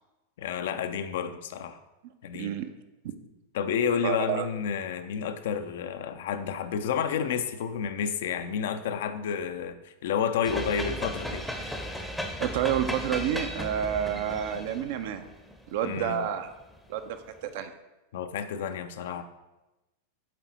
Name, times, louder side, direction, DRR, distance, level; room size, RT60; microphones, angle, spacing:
voice 1, 0.4-1.8 2.2-2.5 3.5-11.8 15.8-16.2 18.1-19.2, left 7 dB, 55° left, 9 dB, 0.4 m, -30 dB
voice 2, 2.3-2.7 3.0-3.1 4.0-4.5 12.4-15.3 15.7-16.5 16.9-17.7, right 9 dB, 50° right, 9 dB, 0.5 m, -29 dB
sound 1, 10.4-16.8, equal, ahead, 0.7 m, -36 dB
7.4 x 4.0 x 4.1 m, 1.0 s
figure-of-eight pair, 90°, 0 cm